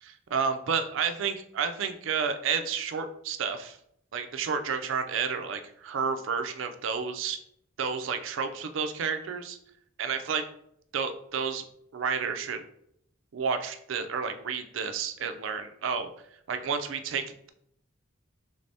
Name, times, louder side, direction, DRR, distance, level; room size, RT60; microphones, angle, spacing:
voice 1, 0.0-3.8 4.1-7.4 7.8-9.6 10.0-10.4 10.9-11.6 11.9-12.6 13.3-16.1 16.5-17.5, right 6 dB, 85° right, 7 dB, 0.4 m, -31 dB
3.4 x 3.3 x 2.6 m, 0.71 s
head